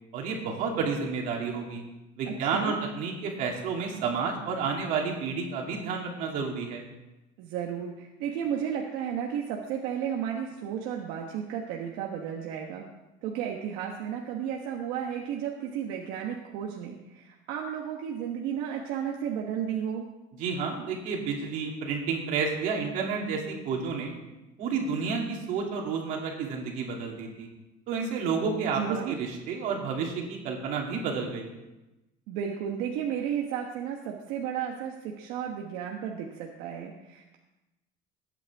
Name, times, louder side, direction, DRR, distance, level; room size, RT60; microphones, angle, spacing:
voice 1, 0.1-1.8 2.2-6.8 20.4-24.1 24.6-27.5 27.9-31.5, right 5 dB, 55° right, 0 dB, 2.8 m, -30 dB
voice 2, 2.3-2.8 7.4-12.9 13.2-20.0 28.7-29.2 32.3-37.4, right 8 dB, 80° right, 0 dB, 1.3 m, -33 dB
20.0 x 9.0 x 3.6 m, 1.0 s
cardioid pair, 170°, 16 cm